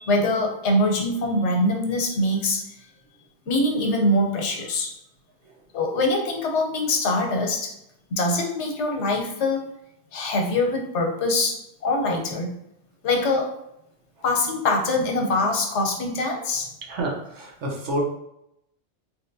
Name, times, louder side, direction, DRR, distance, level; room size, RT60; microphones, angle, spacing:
voice 1, 0.0-2.6 3.5-4.9 5.7-7.7 8.1-9.7 10.1-12.5 13.0-13.5 14.2-16.7, left 2 dB, 80° left, 2 dB, 1.0 m, -23 dB
voice 2, 16.9-18.0, right 1 dB, 75° right, -1 dB, 1.1 m, -28 dB
3.1 x 2.9 x 2.6 m, 0.80 s
omnidirectional pair, 1.2 m